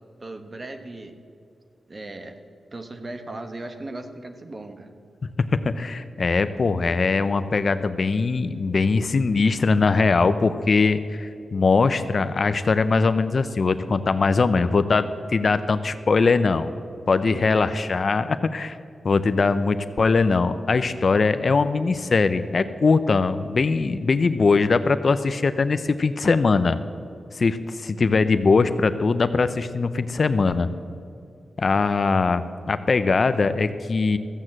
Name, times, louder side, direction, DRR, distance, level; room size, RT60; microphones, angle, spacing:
voice 1, 0.2-1.2 1.9-2.4 2.7-4.9 17.3-17.7, right 2 dB, 35° right, 7 dB, 1.3 m, -37 dB
voice 2, 5.4-16.7 17.1-18.8 19.0-26.8 27.3-30.7 31.6-34.2, left 4 dB, 50° left, 12 dB, 0.6 m, -21 dB
14.5 x 7.9 x 7.5 m, 2.5 s
cardioid pair, 85°, 0 cm